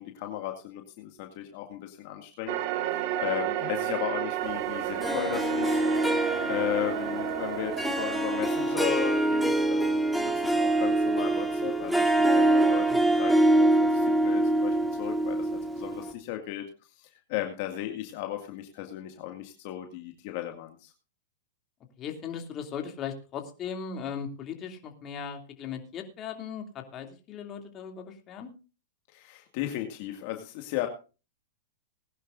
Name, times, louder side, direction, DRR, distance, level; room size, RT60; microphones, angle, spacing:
voice 1, 0.0-2.6 2.8-5.8 6.5-16.7 17.0-20.9 29.1-30.9, left 13 dB, 50° left, 4 dB, 2.1 m, -36 dB
sound 1, 2.5-8.9, right 13 dB, 50° right, 1.4 m, -32 dB
Harp, 5.0-16.1, right 1 dB, ahead, 1.8 m, -25 dB
voice 2, 22.0-28.5, left 7 dB, 30° left, 4 dB, 2.8 m, -38 dB
20.5 x 11.0 x 2.6 m, 0.33 s
hypercardioid pair, 135°, 0 cm